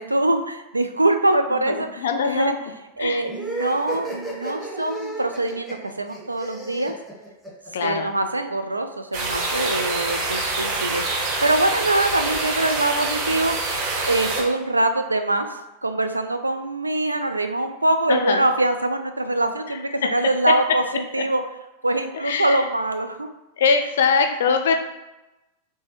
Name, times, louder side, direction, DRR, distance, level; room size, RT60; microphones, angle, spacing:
voice 1, 0.0-2.6 3.0-6.9 7.8-13.6 14.1-21.4 21.8-23.3, right 2 dB, 80° right, 7 dB, 0.4 m, -23 dB
voice 2, 1.6-2.6 3.0-3.2 7.7-8.1 18.1-18.5 19.7-20.1 20.5-20.6 22.2-22.7 23.6-24.7, left 5 dB, 60° left, 6 dB, 0.5 m, -22 dB
sound 1, 3.3-7.9, right 3 dB, 5° left, 1.5 m, -33 dB
sound 2, 9.1-14.4, right 2 dB, 45° right, 0.9 m, -26 dB
3.3 x 3.3 x 4.1 m, 1.0 s
figure-of-eight pair, 90°, 0 cm